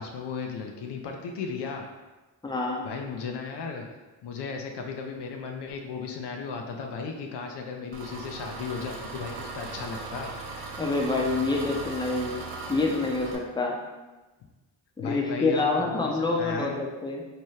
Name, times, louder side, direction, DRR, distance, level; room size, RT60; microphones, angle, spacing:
voice 1, 0.0-1.9 2.8-3.8 4.2-10.3 15.0-16.8, left 5 dB, 70° left, 3 dB, 0.5 m, -35 dB
voice 2, 2.4-2.9 10.8-12.3 12.7-13.8 15.0-17.3, left 3 dB, 10° left, -1 dB, 0.5 m, -27 dB
Engine, 7.9-13.4, right 3 dB, 80° right, 0.6 m, -38 dB
2.8 x 2.2 x 3.1 m, 1.2 s
supercardioid pair, 50°, 43 cm